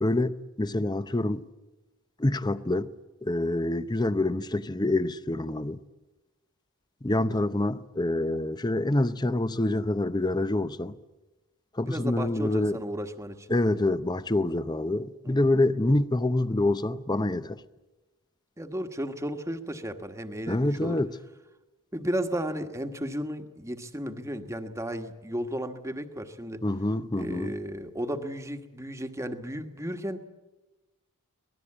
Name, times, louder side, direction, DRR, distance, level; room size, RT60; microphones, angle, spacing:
voice 1, 0.0-1.4 2.2-2.9 3.2-5.8 7.0-11.0 11.7-12.8 13.5-17.6 20.5-21.1 26.6-27.6, left 2 dB, 20° left, 0.7 m, -26 dB
voice 2, 11.9-13.5 15.2-15.5 18.6-21.0 21.9-26.6 27.1-30.2, equal, 15° right, 1.4 m, -34 dB
24.5 x 19.0 x 8.8 m
head